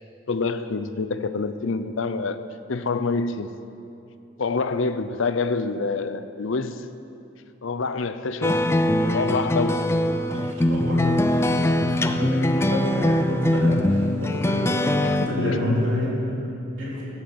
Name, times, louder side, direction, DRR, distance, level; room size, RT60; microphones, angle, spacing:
voice 1, 0.3-3.6 4.4-6.9 7.6-8.7 9.1-9.9 15.0-15.8, left 4 dB, 75° left, 11 dB, 0.6 m, -27 dB
sound 1, 8.4-15.3, left 1 dB, 15° left, 0.4 m, -22 dB
voice 2, 10.3-17.0, left 1 dB, 65° right, -6 dB, 3.8 m, -29 dB
14.5 x 7.2 x 8.1 m, 2.7 s
head